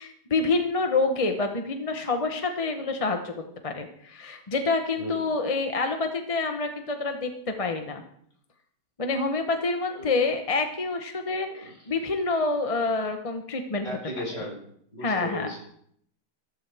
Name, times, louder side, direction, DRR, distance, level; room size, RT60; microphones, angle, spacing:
voice 1, 0.0-7.3 7.6-8.0 9.0-13.9 15.0-15.5, left 3 dB, 25° left, 5 dB, 0.8 m, -27 dB
voice 2, 4.9-5.3 9.9-10.1 11.3-11.8 13.8-14.6 14.9-15.6, left 1 dB, 45° left, -1 dB, 4.9 m, -36 dB
14.0 x 14.0 x 3.5 m, 0.67 s
omnidirectional pair, 1.8 m